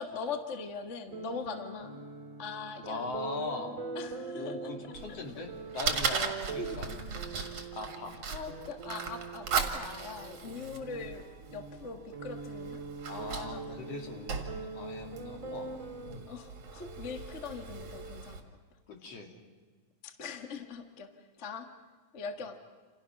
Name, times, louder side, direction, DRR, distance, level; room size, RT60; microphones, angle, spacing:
voice 1, 0.0-2.0 2.4-3.1 3.9-4.5 6.5-7.0 8.3-11.2 11.5-12.8 13.2-13.9 16.3-18.5 19.0-19.2 20.0-21.1 21.4-21.7 22.1-22.6, left 5 dB, 30° left, 5 dB, 1.4 m, -41 dB
sound 1, 1.1-16.2, right 3 dB, 25° right, 3.2 m, -43 dB
voice 2, 2.9-3.7 4.3-6.9 7.7-8.2 13.1-15.7 18.9-19.3, left 3 dB, 55° left, 3 dB, 3.6 m, -40 dB
Fire, 5.0-18.4, right 5 dB, 55° right, 3.0 m, -38 dB
29.0 x 28.5 x 6.0 m, 1.4 s
omnidirectional pair, 3.4 m